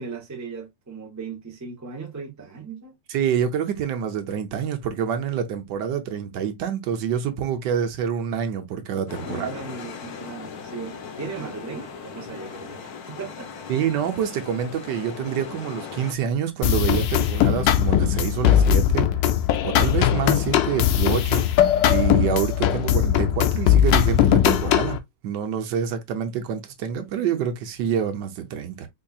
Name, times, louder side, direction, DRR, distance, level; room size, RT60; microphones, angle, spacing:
voice 1, 0.0-2.9 9.2-13.5 20.6-20.8, right 4 dB, 25° right, 0.4 m, -37 dB
voice 2, 3.1-9.5 13.7-19.1 19.6-21.6 21.9-25.0 25.2-28.9, right 8 dB, 75° right, 1.3 m, -27 dB
sound 1, 9.1-16.1, left 6 dB, 65° left, 1.1 m, -38 dB
sound 2, 16.6-25.0, left 10 dB, 80° left, 1.3 m, -19 dB
4.5 x 2.7 x 2.3 m
omnidirectional pair, 2.0 m